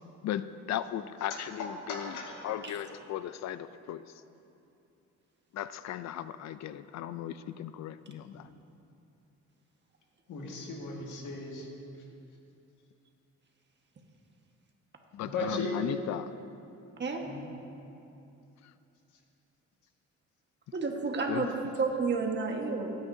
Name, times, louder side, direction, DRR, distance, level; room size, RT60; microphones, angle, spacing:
voice 1, 0.2-2.1 2.4-4.0 5.5-8.5 15.1-16.3 21.3-21.5, left 11 dB, 65° left, 13 dB, 0.4 m, -37 dB
voice 2, 1.3-2.5 2.7-3.0 8.3-8.4 10.3-11.7 15.2-15.9 17.2-17.5, left 3 dB, 80° left, -1 dB, 1.9 m, -37 dB
voice 3, 20.7-22.9, right 4 dB, 35° right, 2 dB, 1.5 m, -31 dB
17.0 x 9.4 x 2.7 m, 2.7 s
cardioid pair, 90°, 30 cm